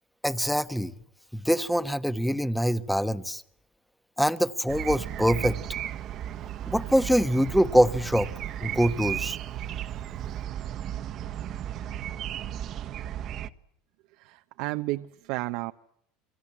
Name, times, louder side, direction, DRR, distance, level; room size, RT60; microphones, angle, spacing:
voice 1, 0.2-0.9 1.3-3.4 4.2-5.6 6.7-8.3 8.6-9.4, equal, ahead, 13 dB, 1.3 m, -24 dB
sound 1, 4.7-13.5, right 11 dB, 45° right, 1.3 m, -34 dB
voice 2, 14.2-15.7, right 20 dB, 70° right, 9 dB, 0.9 m, -32 dB
28.5 x 23.0 x 7.4 m, 0.74 s
supercardioid pair, 120°, 0 cm